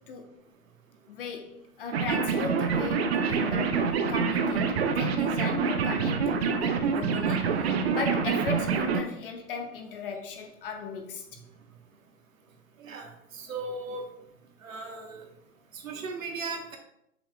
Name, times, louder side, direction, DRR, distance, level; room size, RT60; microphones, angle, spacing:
voice 1, 1.1-11.2, left 5 dB, 35° left, 5 dB, 0.7 m, -37 dB
sound 1, 1.9-9.0, right 5 dB, 45° right, 0.7 m, -26 dB
voice 2, 12.8-14.0 14.6-15.3 15.7-16.8, right 3 dB, 60° right, 3 dB, 1.3 m, -37 dB
7.2 x 5.8 x 2.3 m, 0.78 s
figure-of-eight pair, 115°, 45 cm